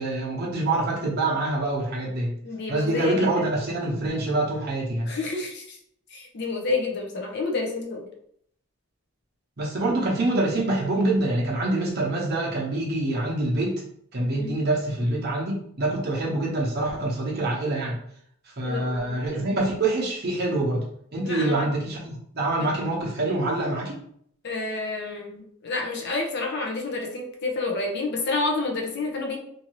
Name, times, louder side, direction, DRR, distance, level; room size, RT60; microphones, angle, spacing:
voice 1, 0.0-2.3 2.7-5.1 9.6-13.8 14.1-18.0 18.6-20.9 21.1-24.0, right 2 dB, 45° right, -3 dB, 0.8 m, -25 dB
voice 2, 2.4-3.6 5.1-5.8 6.1-8.1 14.4-14.5 18.6-19.2 21.2-21.7 24.4-29.4, left 3 dB, 50° left, 1 dB, 0.6 m, -29 dB
2.7 x 2.6 x 3.0 m, 0.68 s
head